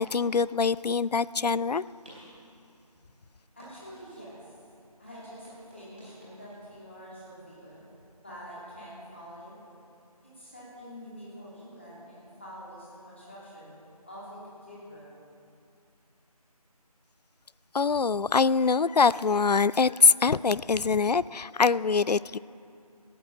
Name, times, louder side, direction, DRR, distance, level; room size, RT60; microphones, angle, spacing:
voice 1, 0.0-1.8 17.7-22.4, left 5 dB, 85° left, 19 dB, 0.4 m, -24 dB
sound 1, 1.3-8.8, right 1 dB, 10° right, 2.7 m, -57 dB
voice 2, 3.6-4.5 5.0-7.8 8.1-9.6 10.2-13.7 14.0-15.2, equal, 20° left, -8 dB, 2.7 m, -46 dB
15.0 x 9.0 x 7.3 m, 2.6 s
figure-of-eight pair, 175°, 20 cm